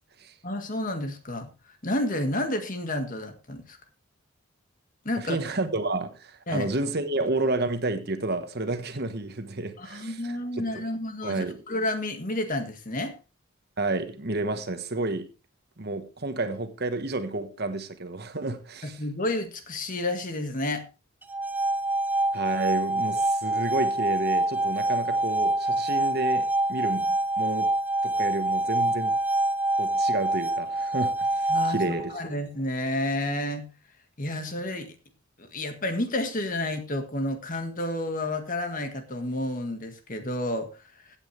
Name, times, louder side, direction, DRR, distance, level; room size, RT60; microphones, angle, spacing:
voice 1, 0.4-1.5 1.8-3.8 5.1-5.4 6.5-6.7 9.8-13.1 18.8-20.8 31.5-31.8 32.1-33.7 34.2-34.9 35.4-40.7, left 1 dB, 40° left, 1.8 m, -30 dB
voice 2, 5.2-10.8 11.2-11.6 13.8-15.3 15.8-19.0 22.3-27.7 28.0-29.1 29.8-32.1, right 2 dB, 50° right, 1.3 m, -30 dB
sound 1, 21.2-32.2, right 2 dB, 10° right, 0.7 m, -26 dB
16.0 x 8.8 x 3.3 m
head